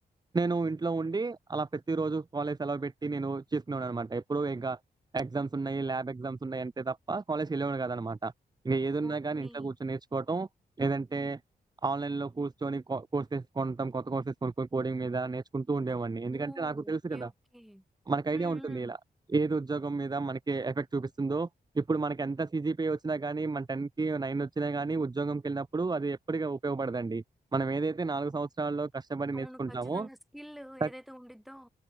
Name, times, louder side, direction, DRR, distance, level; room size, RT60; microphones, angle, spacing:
voice 1, 0.3-4.8 5.1-8.3 8.6-10.5 10.8-11.4 11.8-17.3 18.1-19.0 19.3-21.5 21.7-27.2 27.5-30.1 30.8-30.9, right 3 dB, 25° right, 1.3 m, -31 dB
voice 2, 9.0-9.7 16.3-17.8 18.3-18.9 29.3-31.7, equal, ahead, 6.8 m, -49 dB
open air
wide cardioid pair, 110°, 17 cm